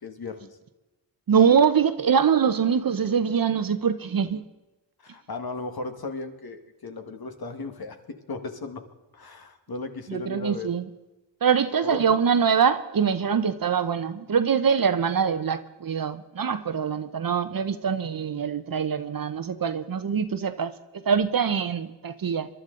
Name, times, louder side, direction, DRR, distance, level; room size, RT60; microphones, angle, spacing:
voice 1, 0.0-0.6 5.0-8.8 9.1-10.7 11.8-12.1, left 3 dB, 55° left, 6 dB, 1.7 m, -36 dB
voice 2, 1.3-4.4 10.1-10.8 11.4-22.5, right 7 dB, 50° right, 11 dB, 0.9 m, -23 dB
23.0 x 11.5 x 3.8 m, 1.1 s
cardioid pair, 60°, 45 cm